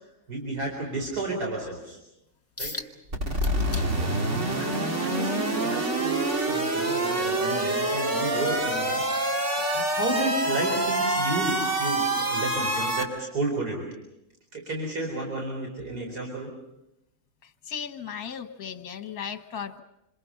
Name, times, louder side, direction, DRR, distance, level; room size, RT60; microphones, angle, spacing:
voice 1, 0.3-2.0 2.6-2.7 4.0-9.4 9.7-13.9 14.5-16.5, right 2 dB, 85° right, 0 dB, 4.8 m, -32 dB
sound 1, 2.6-2.9 3.4-4.1 4.6-7.2 7.6-7.9 8.4-8.5, left 2 dB, 10° left, 1.2 m, -40 dB
sound 2, 3.1-13.0, right 1 dB, 50° right, 2.6 m, -26 dB
voice 2, 17.6-19.8, left 7 dB, 70° left, 8 dB, 1.7 m, -36 dB
27.0 x 27.0 x 5.6 m, 0.88 s
omnidirectional pair, 1.6 m